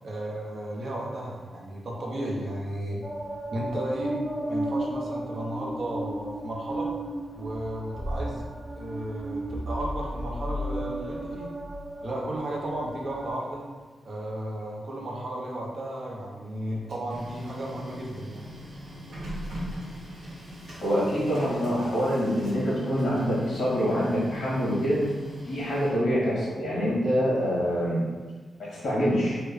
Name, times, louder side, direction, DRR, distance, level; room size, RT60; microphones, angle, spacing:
voice 1, 0.0-3.1 3.5-4.2 4.5-6.9 7.3-8.5 8.7-11.5 12.0-13.6 14.0-18.5, right 1 dB, 45° right, -2 dB, 0.6 m, -34 dB
sound 1, 3.0-13.3, right 1 dB, 5° right, 0.3 m, -34 dB
Printer, 16.6-26.4, equal, 90° right, 1.3 m, -41 dB
voice 2, 20.8-25.0 25.4-28.0 28.6-29.4, equal, 65° left, -7 dB, 1.2 m, -25 dB
3.4 x 2.1 x 3.4 m, 1.4 s
wide cardioid pair, 175°, 0 cm